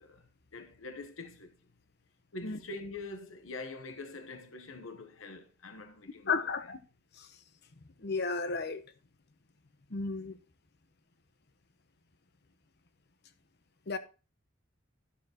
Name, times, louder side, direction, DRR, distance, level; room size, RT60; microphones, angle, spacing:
voice 1, 0.0-1.7 2.3-6.5, left 2 dB, 85° left, 1.0 m, -45 dB
voice 2, 6.3-6.8 7.2-7.3 8.0-8.8 9.9-10.4 13.9-14.0, left 4 dB, 55° left, 1.0 m, -33 dB
13.0 x 7.3 x 2.9 m
head